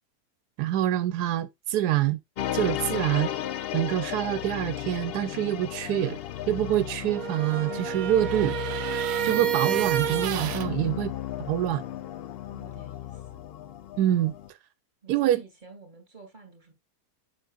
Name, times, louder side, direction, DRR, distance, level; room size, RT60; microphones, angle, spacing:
voice 1, 0.6-2.2 2.5-3.3 3.7-6.2 6.5-8.6 9.2-11.1 11.5-11.8 14.0-14.3 15.1-15.4, right 13 dB, 85° right, 1.2 m, -25 dB
sound 1, 2.4-14.5, left 11 dB, 90° left, 0.5 m, -35 dB
sound 2, 7.1-10.7, right 10 dB, 65° right, 1.1 m, -29 dB
voice 2, 12.5-13.4 15.0-16.7, right 4 dB, 30° right, 2.9 m, -49 dB
8.0 x 6.2 x 2.4 m
omnidirectional pair, 1.7 m